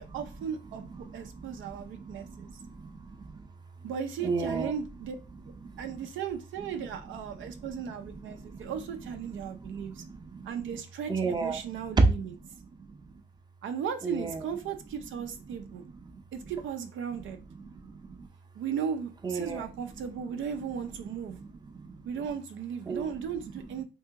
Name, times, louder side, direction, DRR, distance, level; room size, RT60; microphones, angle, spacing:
voice 1, 0.0-2.6 3.8-5.2 5.8-10.0 10.4-12.3 13.6-15.8 16.3-17.4 18.5-21.4 22.0-23.8, right 7 dB, 75° right, 0.5 m, -36 dB
voice 2, 0.8-3.5 4.2-4.7 5.3-6.0 6.8-6.9 7.4-8.7 9.4-10.8 11.1-12.1 12.5-13.2 14.0-14.4 15.8-16.5 17.5-18.3 19.2-19.7 21.2-22.0 22.9-23.0 23.4-23.8, right 3 dB, 20° right, 0.6 m, -34 dB
2.8 x 2.7 x 3.6 m
cardioid pair, 90°, 20 cm